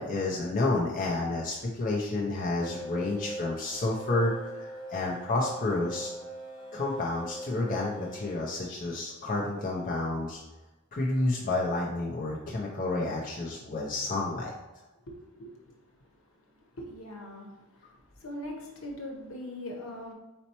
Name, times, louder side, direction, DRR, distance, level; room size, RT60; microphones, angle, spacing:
voice 1, 0.0-6.1 6.7-10.4 10.9-14.5, left 2 dB, 40° left, -3 dB, 0.6 m, -30 dB
sound 1, 2.6-8.4, right 1 dB, 20° left, 1.2 m, -42 dB
voice 2, 15.4-15.7 16.8-17.5 18.2-20.1, left 1 dB, 70° left, 0 dB, 1.1 m, -40 dB
4.2 x 4.2 x 2.9 m, 1.1 s
head